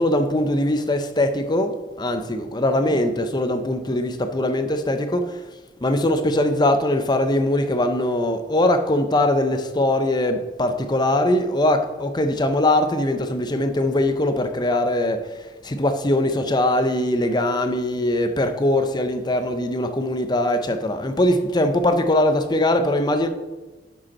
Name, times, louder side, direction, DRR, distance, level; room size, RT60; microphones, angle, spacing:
voice 1, 0.0-5.4 5.8-15.3 15.6-23.3, left 1 dB, 25° left, 0.6 m, -21 dB
10.5 x 5.2 x 4.2 m
head